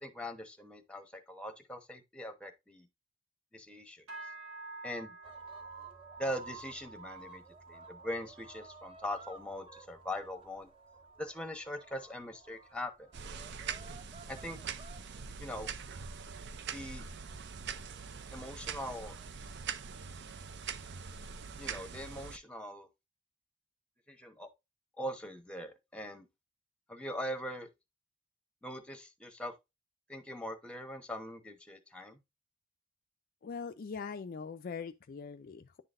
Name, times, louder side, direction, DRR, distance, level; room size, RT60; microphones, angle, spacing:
voice 1, 0.0-2.9 3.5-4.0 4.8-5.1 6.2-7.4 7.7-10.7 11.2-13.1 14.3-14.6 15.4-15.7 16.7-17.0 18.3-19.1 21.6-22.9 24.1-24.5 25.0-26.3 26.9-27.7 28.6-29.5 30.1-32.2, left 1 dB, 5° left, 1.0 m, -41 dB
sound 1, 4.1-13.6 13.9-14.4 14.8-15.1 15.7-15.8, right 3 dB, 85° right, 2.3 m, -52 dB
sound 2, 5.2-19.5, right 4 dB, 30° right, 1.5 m, -56 dB
sound 3, 13.1-22.4, right 6 dB, 60° right, 0.5 m, -43 dB
voice 2, 33.4-35.8, left 5 dB, 45° left, 0.4 m, -42 dB
10.5 x 3.9 x 2.5 m
head